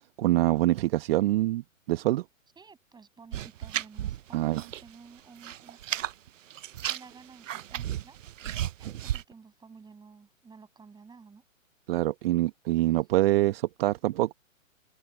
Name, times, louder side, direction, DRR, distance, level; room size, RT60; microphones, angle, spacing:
voice 1, 0.2-2.2 4.3-4.6 11.9-14.3, right 16 dB, 45° right, 1.3 m, -25 dB
voice 2, 2.6-5.8 6.9-8.2 8.8-11.4, right 5 dB, 10° right, 7.7 m, -52 dB
sound 1, 3.3-4.9 5.2-6.1 6.5-9.2, right 11 dB, 70° right, 0.6 m, -34 dB
open air
figure-of-eight pair, 120°, 40 cm